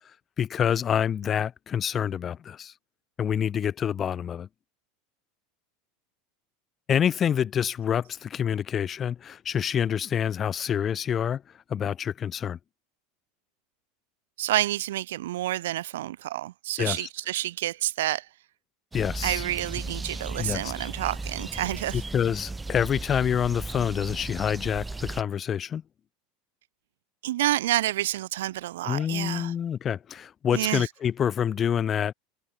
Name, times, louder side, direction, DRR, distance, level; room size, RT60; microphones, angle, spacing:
voice 1, 0.4-2.7 3.2-4.5 6.9-11.4 11.7-12.6 16.8-17.1 18.9-19.4 20.4-20.7 21.9-25.8 28.8-32.1, left 8 dB, 30° left, 1.3 m, -27 dB
voice 2, 14.4-18.3 19.2-22.0 27.2-29.5 30.5-30.9, right 14 dB, 85° right, 0.5 m, -29 dB
sound 1, 18.9-25.2, right 3 dB, 10° right, 1.5 m, -36 dB
supercardioid pair, 125°, 0 cm